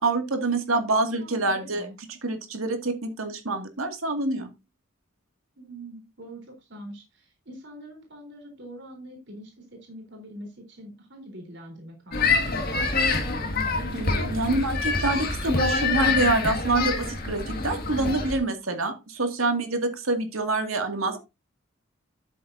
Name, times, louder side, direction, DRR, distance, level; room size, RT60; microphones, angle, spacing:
voice 1, 0.0-1.9 2.2-4.5 13.9-21.2, right 2 dB, 85° right, 5 dB, 2.3 m, -26 dB
voice 2, 1.2-2.0 5.6-14.0 20.8-21.2, right 1 dB, 55° right, 2 dB, 3.9 m, -44 dB
sound 1, 12.1-18.4, left 4 dB, 45° left, 1.9 m, -26 dB
12.5 x 7.6 x 2.7 m, 0.25 s
head